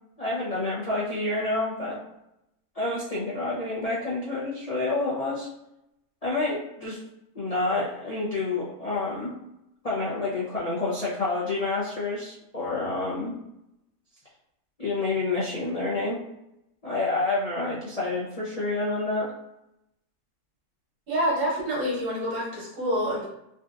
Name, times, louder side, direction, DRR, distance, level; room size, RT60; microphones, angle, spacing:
voice 1, 0.2-2.0 2.7-5.5 6.2-7.0 7.3-9.3 9.8-13.4 14.8-16.2 16.8-19.3, left 2 dB, 60° left, -7 dB, 0.4 m, -28 dB
voice 2, 21.1-23.3, equal, 80° right, -5 dB, 1.8 m, -27 dB
3.7 x 2.5 x 2.4 m, 0.85 s
omnidirectional pair, 1.7 m